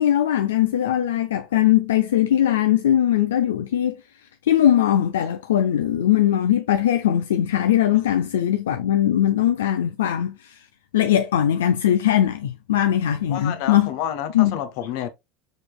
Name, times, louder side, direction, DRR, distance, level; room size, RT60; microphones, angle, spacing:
voice 1, 0.0-4.0 4.4-10.6 10.9-13.9 14.3-14.6, left 11 dB, 85° left, 0.4 m, -20 dB
voice 2, 13.3-15.1, left 10 dB, 65° left, 0.8 m, -29 dB
4.9 x 4.1 x 2.2 m
hypercardioid pair, 95°, 0 cm